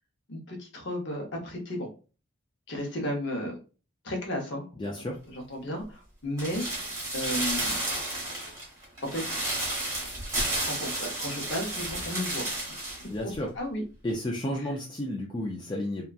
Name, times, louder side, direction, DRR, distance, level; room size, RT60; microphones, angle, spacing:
voice 1, 0.3-1.9 2.7-3.6 4.0-4.7 5.3-7.8 9.0-9.3 10.6-12.4 12.8-12.9 13.2-13.8 14.6-14.7, left 1 dB, 55° left, 1 dB, 0.8 m, -34 dB
voice 2, 4.8-5.2 13.1-13.5 14.0-16.1, left 1 dB, 20° left, -1 dB, 0.4 m, -32 dB
sound 1, 6.4-13.1 13.3-13.4, right 1 dB, 15° right, 1.0 m, -32 dB
2.8 x 2.3 x 2.3 m, 0.35 s
head